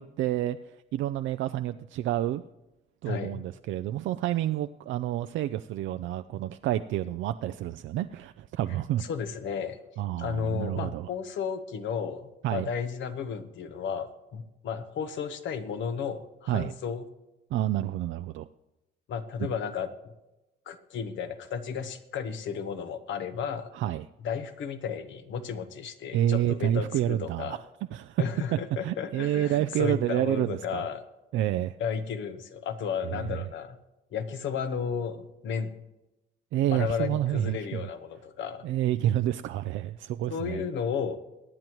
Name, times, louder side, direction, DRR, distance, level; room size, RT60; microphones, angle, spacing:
voice 1, 0.0-2.4 3.0-9.0 10.0-11.1 12.4-12.7 16.5-16.7 17.5-18.5 23.7-24.1 26.1-27.6 27.9-28.2 28.8-30.8 31.3-31.8 33.0-33.4 36.5-37.9 38.6-40.6, right 12 dB, 75° right, 9 dB, 0.4 m, -29 dB
voice 2, 3.0-3.4 9.0-9.8 10.2-17.0 19.1-19.9 20.7-23.7 24.2-27.6 28.2-31.0 31.8-33.8 34.1-35.7 36.7-38.6 40.3-41.2, left 6 dB, 75° left, 9 dB, 1.1 m, -33 dB
23.0 x 9.2 x 3.1 m, 0.98 s
cardioid pair, 90°, 20 cm